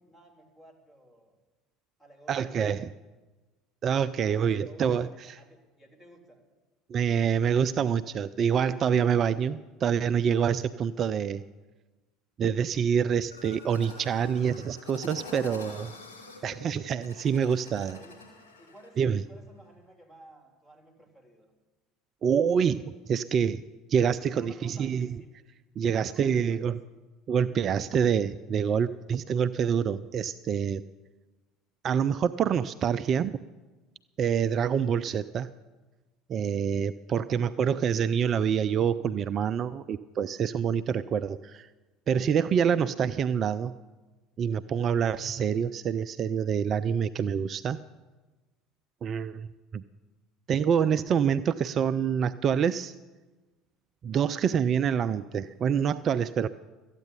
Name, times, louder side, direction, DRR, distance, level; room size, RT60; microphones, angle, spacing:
voice 1, 0.0-1.4 2.0-2.7 4.2-6.4 15.3-16.5 17.9-18.2 18.6-21.5 24.3-25.3 25.9-26.6, right 1 dB, 15° left, 1 dB, 3.4 m, -54 dB
voice 2, 2.3-2.9 3.8-5.1 6.9-11.4 12.4-15.9 16.4-18.0 19.0-19.2 22.2-23.6 23.9-25.2 25.8-26.7 27.3-30.8 31.8-33.4 34.2-35.5 36.3-41.7 42.1-43.7 44.4-47.8 49.0-49.5 49.7-49.8 50.5-52.9 54.0-56.5, right 7 dB, 40° right, 13 dB, 0.4 m, -26 dB
sound 1, 13.3-18.9, left 3 dB, 80° left, 3.1 m, -46 dB
13.5 x 9.1 x 8.4 m, 1.2 s
figure-of-eight pair, 65°, 0 cm